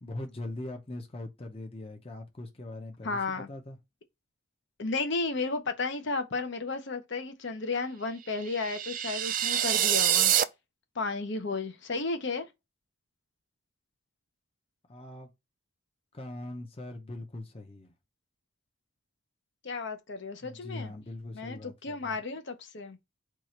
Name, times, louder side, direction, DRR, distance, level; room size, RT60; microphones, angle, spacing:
voice 1, 0.0-3.8 14.9-15.3 16.1-17.9 20.4-22.2, left 1 dB, 30° left, 0.7 m, -41 dB
voice 2, 3.0-3.5 4.8-10.3 11.0-12.5 19.6-20.9 21.3-23.0, left 3 dB, 60° left, 0.7 m, -33 dB
sound 1, 8.4-10.4, right 11 dB, 40° right, 0.4 m, -26 dB
4.7 x 2.4 x 4.3 m
head